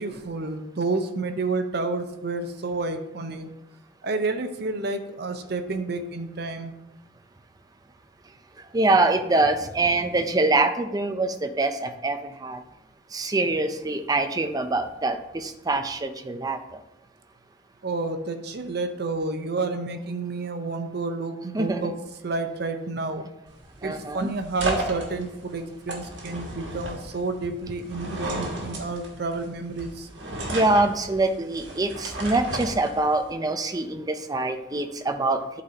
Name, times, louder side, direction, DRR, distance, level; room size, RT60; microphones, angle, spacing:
voice 1, 0.0-3.5 4.0-6.7 17.8-21.9 22.2-23.3 23.8-30.1, right 3 dB, 60° right, 7 dB, 0.7 m, -30 dB
voice 2, 8.7-12.6 13.1-16.6 21.5-21.9 23.8-24.3 30.5-35.6, right 2 dB, 20° right, 7 dB, 0.5 m, -24 dB
sound 1, 23.5-33.3, right 1 dB, 75° right, 1.5 m, -34 dB
11.5 x 4.1 x 2.8 m, 0.90 s
head